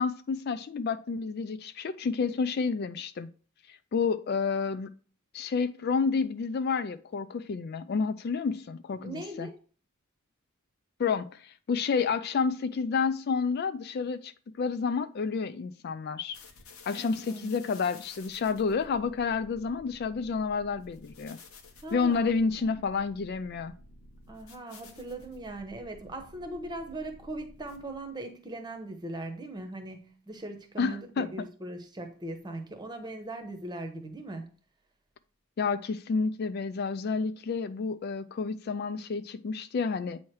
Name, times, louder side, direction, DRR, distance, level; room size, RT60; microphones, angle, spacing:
voice 1, 0.0-3.3 3.7-4.9 5.3-9.5 11.0-14.3 14.6-16.4 16.9-21.4 21.9-23.7 30.8-31.3 35.6-40.2, left 5 dB, 45° left, 0.3 m, -30 dB
voice 2, 9.0-9.6 16.9-17.5 21.8-22.3 22.6-22.8 24.3-34.5, right 1 dB, 20° right, 1.0 m, -40 dB
sound 1, 16.3-28.1, left 2 dB, 75° left, 1.1 m, -52 dB
8.3 x 3.1 x 4.6 m
head